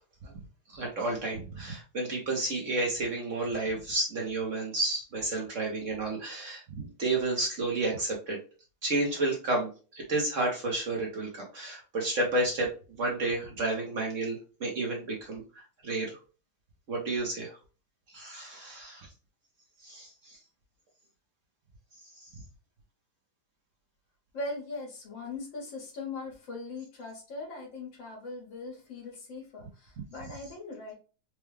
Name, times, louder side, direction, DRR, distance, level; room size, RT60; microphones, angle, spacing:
voice 1, 0.7-8.4 8.8-15.4 15.8-16.2 16.9-17.6 18.1-19.1 19.8-20.4, right 2 dB, 50° right, -1 dB, 1.0 m, -31 dB
voice 2, 24.3-30.9, left 3 dB, 80° left, -2 dB, 2.2 m, -40 dB
4.6 x 2.2 x 3.2 m, 0.35 s
omnidirectional pair, 2.0 m